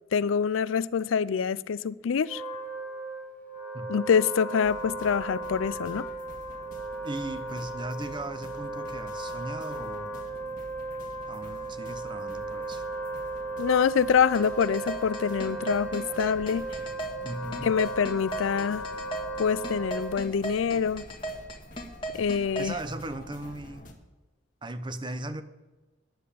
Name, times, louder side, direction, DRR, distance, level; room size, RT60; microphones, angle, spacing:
voice 1, 0.1-2.4 3.9-6.1 13.6-16.6 17.6-18.9 19.4-21.1 22.1-22.7, left 6 dB, 85° left, 0.4 m, -25 dB
Wind instrument woodwind instrument, 2.2-20.3, right 2 dB, 10° left, 1.8 m, -36 dB
sound 1, 4.6-23.9, equal, 45° left, 1.7 m, -48 dB
voice 2, 7.0-10.1 11.3-12.8 17.2-17.7 22.6-23.9 24.6-25.4, right 1 dB, 25° right, 0.7 m, -37 dB
sound 2, 14.3-22.7, right 2 dB, 25° left, 1.7 m, -35 dB
10.5 x 7.6 x 8.4 m
head